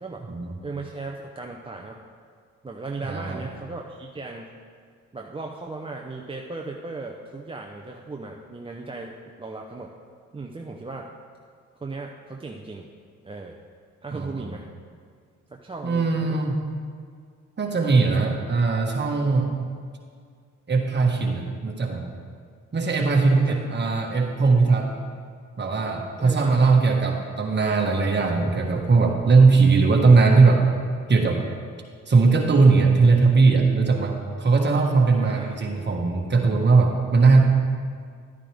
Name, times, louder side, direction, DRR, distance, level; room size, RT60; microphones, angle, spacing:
voice 1, 0.6-2.0 2.6-4.5 5.1-9.9 10.3-11.1 11.8-12.9 13.2-13.6 14.0-14.6 15.5-16.4 23.3-23.6 23.8-23.9 26.2-26.8 27.0-27.1 35.1-35.6, right 3 dB, 15° right, 0 dB, 0.7 m, -37 dB
voice 2, 3.0-3.5 14.1-14.5 15.8-16.6 17.6-19.6 20.7-22.0 22.7-24.9 25.6-30.6 31.1-31.4 32.1-37.4, right 4 dB, 35° right, 1 dB, 1.7 m, -19 dB
11.0 x 9.9 x 3.5 m, 2.1 s
cardioid pair, 75°, 31 cm